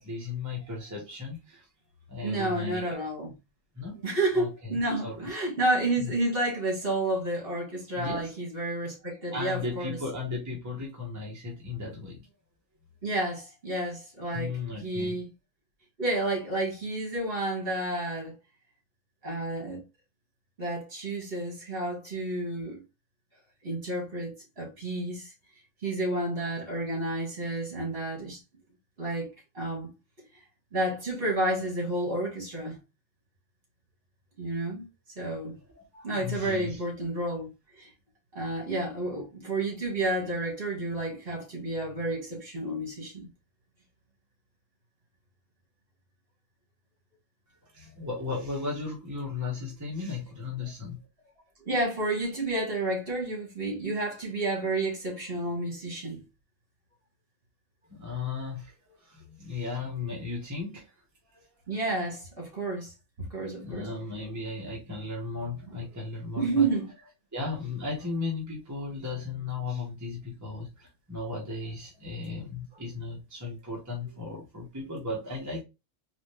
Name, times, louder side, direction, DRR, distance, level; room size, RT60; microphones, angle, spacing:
voice 1, 0.0-1.7 2.1-2.9 3.7-4.0 4.3-5.3 6.0-6.1 7.9-8.3 9.3-12.3 14.3-15.2 35.7-36.8 47.6-51.0 57.9-60.9 61.3-61.5 63.6-66.7 67.3-75.6, left 3 dB, 15° right, 1.3 m, -36 dB
voice 2, 2.2-3.4 4.0-10.0 13.0-15.3 16.0-18.3 19.2-19.8 20.6-22.8 23.6-25.3 25.8-28.4 29.0-29.3 29.5-29.9 30.7-32.8 34.4-34.9 35.2-35.6 36.0-37.5 37.8-37.9 38.3-43.3 51.6-56.2 61.7-62.9 63.3-63.9 65.7-65.8 66.4-66.9, right 2 dB, 45° right, 2.3 m, -30 dB
4.1 x 3.1 x 3.3 m
omnidirectional pair, 1.4 m